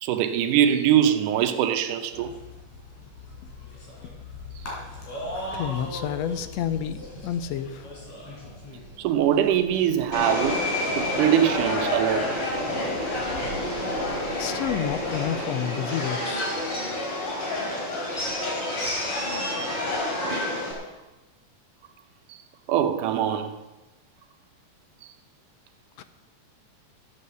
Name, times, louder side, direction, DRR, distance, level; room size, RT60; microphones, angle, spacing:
voice 1, 0.0-2.3 9.0-10.6 11.0-12.4 16.8-16.9 22.3-22.4 22.7-23.5, right 10 dB, 80° right, 2.3 m, -23 dB
sound 1, 2.1-15.4, left 1 dB, 65° left, 5.0 m, -40 dB
voice 2, 5.5-7.9 14.4-16.6 26.0-26.1, left 9 dB, 80° left, 1.5 m, -30 dB
Subway metro underground, 10.1-20.7, left 1 dB, 45° left, 3.9 m, -28 dB
14.0 x 8.6 x 6.9 m
omnidirectional pair, 3.6 m